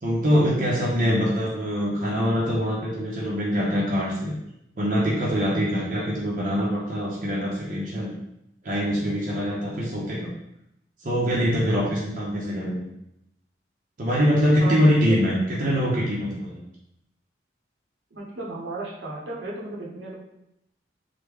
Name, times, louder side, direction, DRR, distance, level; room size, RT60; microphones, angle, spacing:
voice 1, 0.0-4.4 4.8-8.1 8.6-10.3 11.0-12.9 14.0-16.6, equal, 45° right, -5 dB, 0.6 m, -24 dB
voice 2, 14.6-15.2 18.1-20.2, right 2 dB, 85° right, -4 dB, 0.9 m, -35 dB
3.2 x 2.1 x 3.4 m, 0.82 s
head